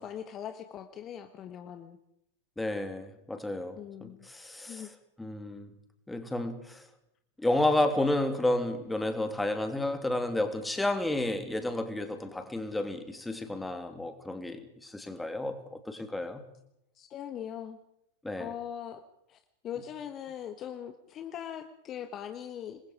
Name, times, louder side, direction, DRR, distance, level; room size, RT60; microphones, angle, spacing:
voice 1, 0.0-2.0 3.8-4.3 4.5-4.9 16.9-17.8 18.4-19.0 19.3-22.8, left 9 dB, 30° left, 8 dB, 1.5 m, -41 dB
voice 2, 2.6-4.9 5.2-5.7 6.1-6.8 7.4-16.4 18.2-18.5, left 1 dB, 5° left, 7 dB, 2.9 m, -31 dB
27.0 x 21.5 x 4.9 m, 0.80 s
figure-of-eight pair, 90°, 0 cm